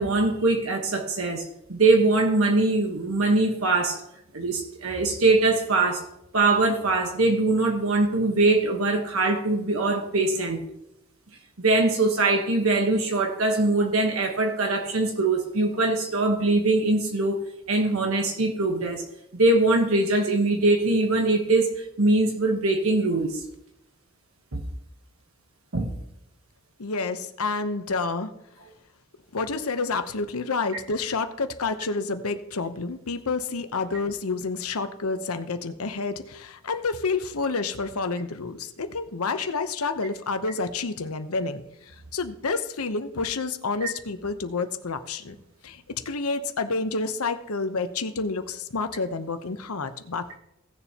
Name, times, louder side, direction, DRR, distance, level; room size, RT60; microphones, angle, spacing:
voice 1, 0.0-4.0 4.3-6.1 6.3-10.6 11.6-17.4 17.7-19.0 19.3-23.4 24.5-24.6 25.7-25.9 43.8-43.9, right 2 dB, 75° right, 1.3 m, -22 dB
voice 2, 26.8-28.3 29.3-45.4 45.6-50.4, left 4 dB, 85° left, 0.9 m, -29 dB
17.5 x 7.0 x 2.9 m
head